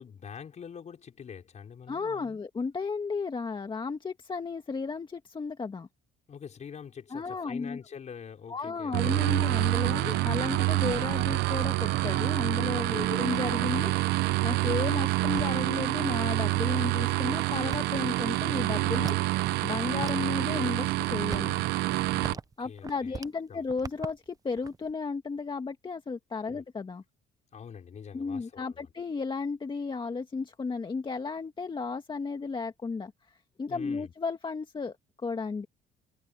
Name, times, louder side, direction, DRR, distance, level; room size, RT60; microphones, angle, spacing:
voice 1, 0.0-2.4 6.3-9.6 12.9-13.2 14.7-14.9 22.1-23.2 23.5-23.6 26.5-26.6 27.5-28.9 33.7-34.1, left 7 dB, 45° left, 5.2 m, -45 dB
voice 2, 1.9-5.9 7.1-7.8 8.5-21.6 22.6-27.0 28.1-33.1 33.6-35.0 35.2-35.7, left 4 dB, 30° left, 1.8 m, -34 dB
sound 1, 8.9-22.3, right 19 dB, 90° right, 0.8 m, -27 dB
sound 2, 12.9-16.0 16.6-16.7 17.4-19.5 19.9-20.6 21.0-23.4 23.7-24.9, right 5 dB, 20° right, 0.6 m, -43 dB
cardioid pair, 100°, 17 cm